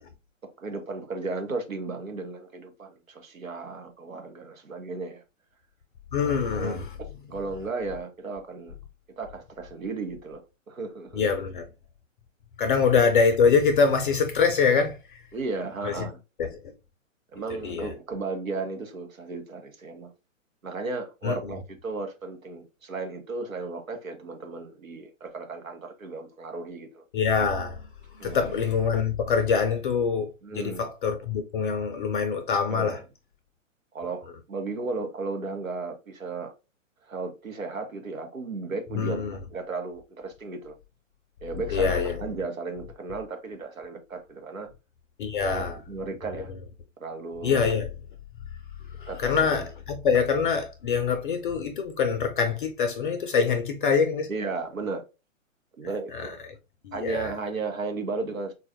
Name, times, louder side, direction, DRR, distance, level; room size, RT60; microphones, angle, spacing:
voice 1, 0.6-5.2 6.2-8.7 9.2-10.4 10.7-11.3 12.7-12.8 15.3-16.2 17.3-20.1 20.6-27.0 28.2-28.6 30.4-30.9 32.7-33.0 33.9-36.5 37.1-40.7 41.4-44.7 45.5-46.5 47.0-47.8 49.1-49.7 54.3-55.0 55.8-56.4 56.9-58.5, right 3 dB, 90° right, 0.9 m, -35 dB
voice 2, 6.1-6.9 11.1-11.7 12.6-15.0 15.8-16.0 16.4-16.5 17.6-17.9 21.2-21.5 27.1-27.8 28.1-30.3 30.5-33.0 38.9-39.4 41.7-42.2 45.2-45.8 47.4-47.9 49.0-54.3 56.1-56.3 56.8-57.3, left 5 dB, 40° left, 0.5 m, -24 dB
3.8 x 2.3 x 2.6 m
figure-of-eight pair, 125°, 40 cm